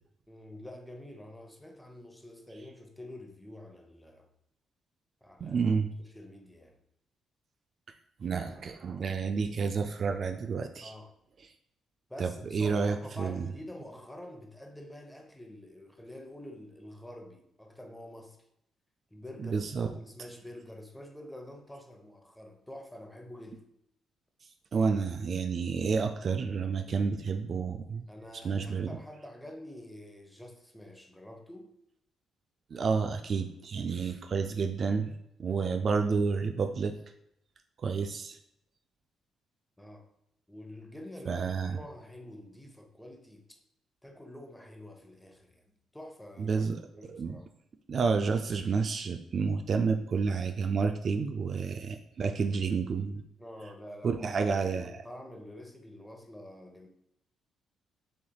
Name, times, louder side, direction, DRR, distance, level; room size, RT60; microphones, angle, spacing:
voice 1, 0.3-4.3 5.2-5.7 6.0-6.8 10.8-11.1 12.1-18.4 19.1-23.6 28.1-31.7 39.8-40.1 40.5-43.6 44.0-46.7 46.9-47.5 53.4-56.9, left 1 dB, 5° left, 0.8 m, -47 dB
voice 2, 5.4-5.9 7.9-10.9 12.2-13.5 19.4-19.9 24.7-28.1 28.4-28.9 32.7-35.1 35.4-37.0 37.8-38.4 41.3-41.8 46.4-46.8 47.1-47.4 47.9-53.2 54.0-54.9, right 5 dB, 50° right, 0.3 m, -30 dB
7.1 x 3.2 x 2.3 m
cardioid pair, 90°, 0 cm